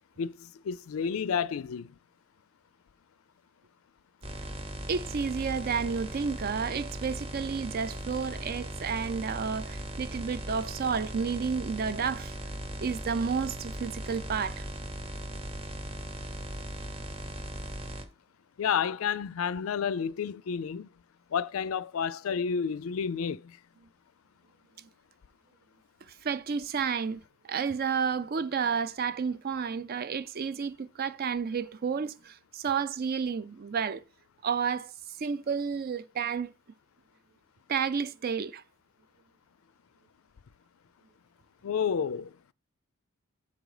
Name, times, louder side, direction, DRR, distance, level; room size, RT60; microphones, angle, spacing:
voice 1, 0.2-1.9 18.6-20.9 21.3-23.6 41.6-42.3, left 7 dB, 70° left, 0.4 m, -30 dB
sound 1, 4.2-18.0, right 1 dB, 30° right, 0.9 m, -38 dB
voice 2, 4.9-12.3 12.8-14.7 24.8-24.9 26.1-34.0 34.4-34.9 35.2-36.5 37.7-38.6, right 6 dB, 45° right, 0.4 m, -31 dB
7.0 x 5.1 x 4.8 m
head